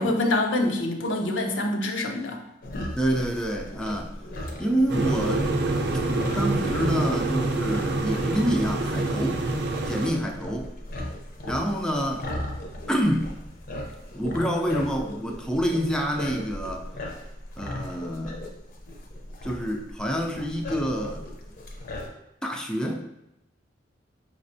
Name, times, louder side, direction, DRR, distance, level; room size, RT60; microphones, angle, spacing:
voice 1, 0.0-2.4 2.7-2.9, left 2 dB, 90° left, 2 dB, 0.6 m, -26 dB
sound 1, 2.6-22.1, left 1 dB, 50° left, 0.6 m, -38 dB
voice 2, 3.0-4.1 4.6-5.4 6.3-9.4 9.9-10.7 11.5-12.2 12.9-13.3 14.1-16.9 17.6-18.4 19.4-21.3 22.4-23.0, equal, 5° left, 1 dB, 0.4 m, -27 dB
sound 2, 4.9-10.1, right 2 dB, 65° right, 0.5 m, -26 dB
5.0 x 3.2 x 2.6 m, 0.89 s
head